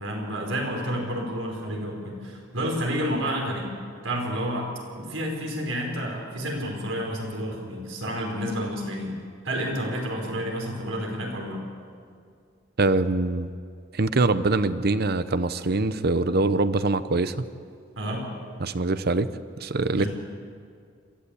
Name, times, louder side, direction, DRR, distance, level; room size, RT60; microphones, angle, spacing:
voice 1, 0.0-3.7 4.0-9.1 9.4-11.6 17.9-18.3 20.0-20.1, equal, 90° right, 0 dB, 5.0 m, -30 dB
voice 2, 12.8-13.5 13.9-17.5 18.6-19.3 19.6-20.0, right 3 dB, 55° right, 13 dB, 0.8 m, -23 dB
22.5 x 15.5 x 8.5 m, 2.2 s
head